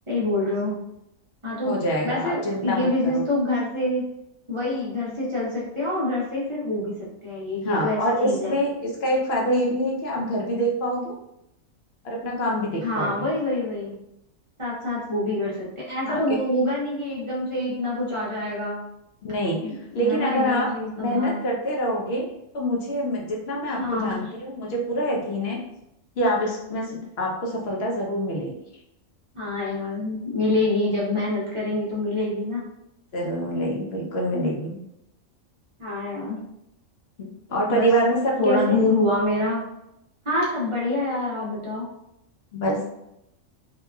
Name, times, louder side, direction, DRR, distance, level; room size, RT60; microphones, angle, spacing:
voice 1, 0.1-0.8 1.4-1.7 2.0-4.0 4.5-6.9 7.2-8.5 12.8-13.9 14.6-18.8 19.6-21.4 23.8-24.3 29.3-32.6 35.8-36.4 37.7-37.9 38.4-39.6 40.2-41.9, left 2 dB, 30° right, -7 dB, 0.6 m, -26 dB
voice 2, 1.6-3.2 7.6-11.1 12.0-13.3 16.0-16.4 19.2-19.6 19.9-20.7 21.0-22.3 22.5-25.6 26.2-28.5 33.1-34.8 37.2-38.8 42.5-42.8, equal, 60° left, -1 dB, 0.7 m, -25 dB
2.8 x 2.3 x 2.3 m, 0.83 s
omnidirectional pair, 1.4 m